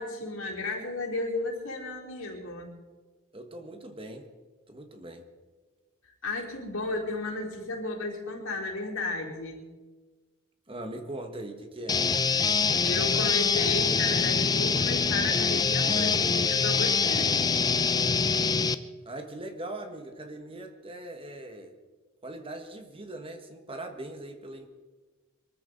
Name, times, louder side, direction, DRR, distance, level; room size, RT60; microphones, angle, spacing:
voice 1, 0.0-2.7 6.0-9.6 12.8-17.6, left 3 dB, 80° left, -3 dB, 4.5 m, -33 dB
voice 2, 3.3-4.3 4.7-5.2 10.7-12.0 19.0-21.7 22.2-24.7, right 1 dB, 25° right, 6 dB, 1.4 m, -40 dB
sound 1, 11.9-18.7, left 5 dB, 20° left, 0.5 m, -25 dB
23.5 x 14.0 x 4.0 m, 1.3 s
head